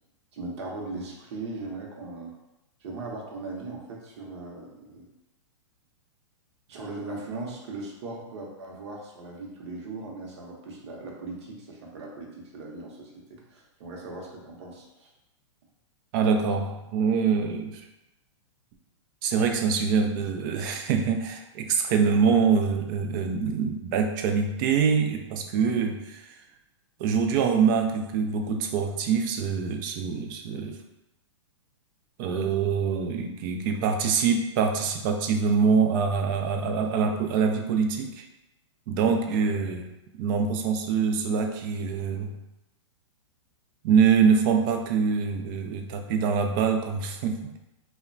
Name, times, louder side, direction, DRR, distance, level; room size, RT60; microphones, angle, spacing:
voice 1, 0.3-2.3 2.8-5.1 6.7-15.1 39.0-39.4, right 3 dB, 60° right, -1 dB, 0.8 m, -39 dB
voice 2, 16.1-17.8 19.2-26.3 27.0-30.8 32.2-38.3 38.9-39.9 40.2-42.3 43.8-47.6, right 6 dB, 40° right, 5 dB, 0.4 m, -24 dB
2.8 x 2.1 x 2.5 m, 0.94 s
hypercardioid pair, 130°, 16 cm